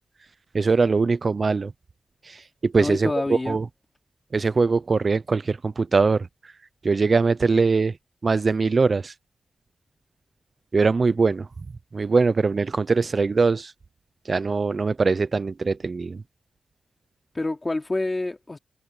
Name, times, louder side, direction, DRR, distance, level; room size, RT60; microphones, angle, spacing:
voice 1, 0.5-1.7 2.2-3.7 4.3-6.3 6.8-7.9 8.2-9.1 10.7-11.5 11.9-13.7 14.3-16.2, right 4 dB, 40° right, 0.5 m, -22 dB
voice 2, 2.7-3.6 17.3-18.6, left 2 dB, 20° left, 2.7 m, -27 dB
wide cardioid pair, 160°, 0 cm